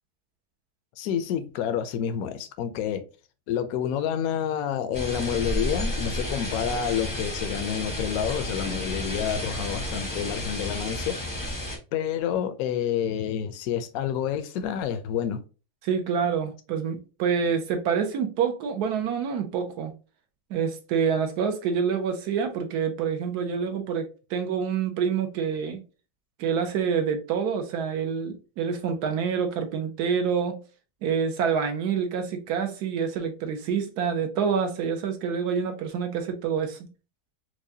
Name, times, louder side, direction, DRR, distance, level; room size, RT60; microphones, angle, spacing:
voice 1, 1.0-3.0 3.5-11.2 11.9-15.4, left 9 dB, 70° left, 0.9 m, -28 dB
sound 1, 4.9-11.8, left 1 dB, 20° left, 0.6 m, -31 dB
voice 2, 15.8-19.9 20.5-25.8 26.4-30.6 31.0-36.9, right 6 dB, 70° right, 1.2 m, -27 dB
4.7 x 2.2 x 2.6 m
omnidirectional pair, 1.8 m